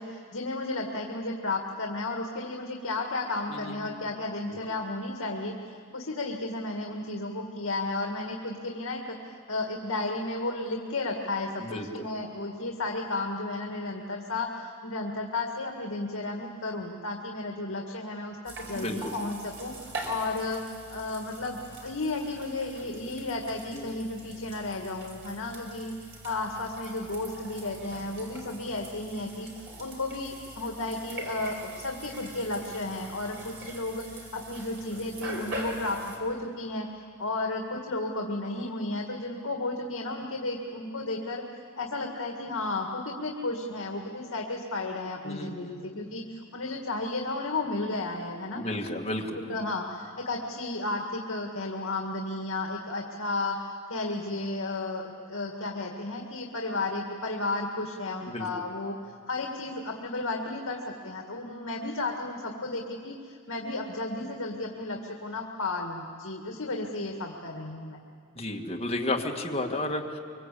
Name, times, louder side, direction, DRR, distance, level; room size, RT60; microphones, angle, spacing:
voice 1, 0.0-9.0 9.3-25.9 26.2-29.5 29.8-36.9 37.2-41.4 41.8-48.6 49.3-53.6 53.9-59.0 59.3-68.0, left 2 dB, 70° left, 1 dB, 2.0 m, -33 dB
voice 2, 3.5-4.0 11.6-12.0 18.7-19.1 23.7-24.0 45.2-45.8 48.5-49.6 58.3-58.5 68.4-70.2, left 1 dB, 30° left, 0 dB, 2.0 m, -33 dB
sound 1, 18.5-36.2, right 2 dB, 55° right, 5.2 m, -43 dB
24.5 x 24.0 x 8.5 m, 2.2 s
head